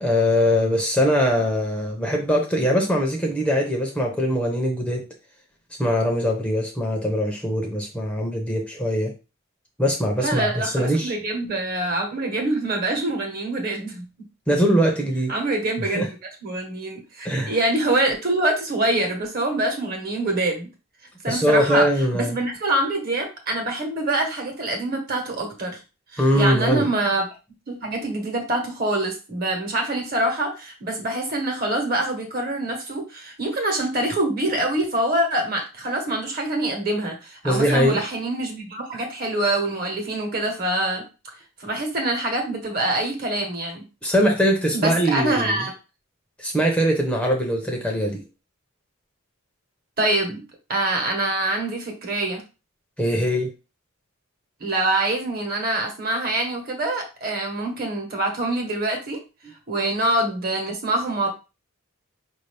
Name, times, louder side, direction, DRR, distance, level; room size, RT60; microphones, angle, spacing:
voice 1, 0.0-5.0 5.8-9.1 9.8-11.1 14.5-15.3 15.9-16.1 17.2-17.6 21.3-22.4 26.2-26.9 37.4-38.0 44.0-45.6 46.4-48.2 53.0-53.5, equal, 5° left, 0 dB, 0.7 m, -22 dB
voice 2, 10.2-14.0 15.3-16.1 16.4-20.7 21.2-21.9 22.1-25.8 26.1-27.2 27.7-41.0 41.6-43.8 44.7-45.7 50.0-50.4 50.7-52.4 54.6-59.2 59.7-61.3, right 2 dB, 45° right, 3 dB, 1.2 m, -25 dB
4.9 x 2.7 x 3.3 m, 0.30 s
head